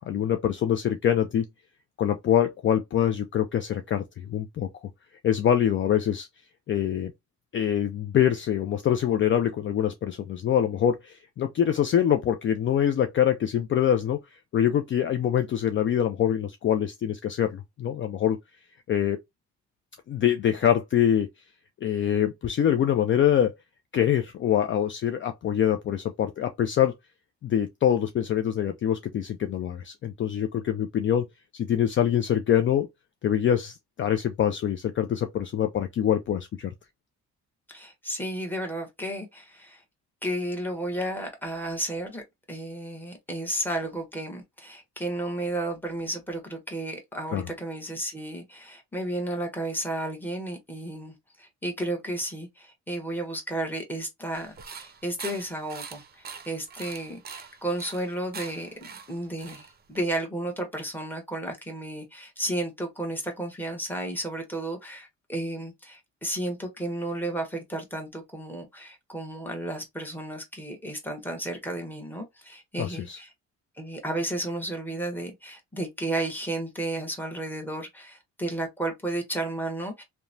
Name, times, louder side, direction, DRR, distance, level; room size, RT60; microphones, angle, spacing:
voice 1, 0.0-1.5 2.0-4.9 5.2-6.3 6.7-7.1 7.5-14.2 14.5-18.4 18.9-19.2 20.1-21.3 21.8-23.5 23.9-26.9 27.4-31.2 31.5-32.9 33.2-36.7 47.3-47.4 72.8-73.2, left 10 dB, 40° left, 0.4 m, -24 dB
voice 2, 37.7-39.8 40.2-42.2 42.5-73.3 73.8-80.0, right 1 dB, 5° left, 1.1 m, -33 dB
sound 1, 54.3-60.1, right 6 dB, 30° right, 0.6 m, -43 dB
2.9 x 2.2 x 2.5 m
cardioid pair, 90°, 30 cm